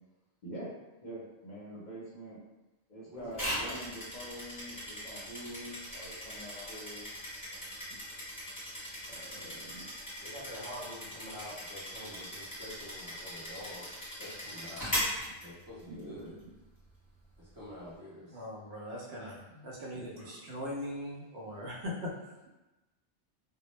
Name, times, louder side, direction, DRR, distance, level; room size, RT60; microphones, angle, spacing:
voice 1, 1.0-2.4 2.9-7.0 7.5-7.7 9.1-9.8 15.9-16.3 19.9-20.3, right 1 dB, 45° left, -7 dB, 0.7 m, -45 dB
voice 2, 3.1-3.8 9.3-9.6 10.2-13.9 14.2-14.8 15.4-16.3 17.4-18.4 19.2-19.3, equal, 30° right, -10 dB, 0.4 m, -47 dB
sound 1, 3.3-16.0, equal, 20° left, 0.9 m, -39 dB
voice 3, 18.3-22.1, left 1 dB, 70° right, -3 dB, 0.8 m, -40 dB
2.1 x 2.0 x 3.0 m, 1.0 s
omnidirectional pair, 1.2 m